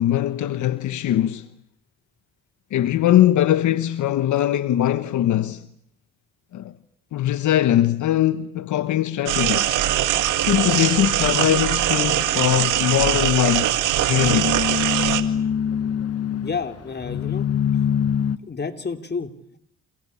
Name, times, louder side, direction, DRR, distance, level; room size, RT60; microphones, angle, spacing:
voice 1, 0.0-1.5 2.7-5.7 6.5-6.7 7.1-9.7 10.5-14.6, left 12 dB, 75° left, 1.2 m, -21 dB
sound 1, 9.3-15.2, right 13 dB, 90° right, 1.9 m, -22 dB
sound 2, 9.8-18.4, left 8 dB, 55° left, 1.6 m, -27 dB
voice 2, 16.4-17.5 18.5-19.3, left 5 dB, 35° left, 3.0 m, -29 dB
28.5 x 21.0 x 8.6 m
cardioid pair, 90°, 30 cm